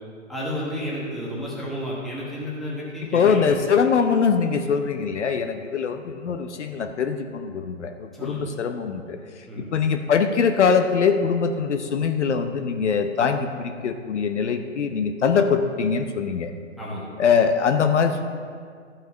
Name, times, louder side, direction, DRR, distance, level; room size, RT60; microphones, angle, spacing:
voice 1, 0.3-3.4 8.1-8.5 9.5-9.6 16.8-17.1, equal, ahead, -7 dB, 1.2 m, -31 dB
voice 2, 3.1-9.2 9.6-16.5 17.2-18.2, left 6 dB, 60° left, 6 dB, 0.8 m, -22 dB
13.0 x 5.6 x 5.0 m, 2.1 s
hypercardioid pair, 155°, 39 cm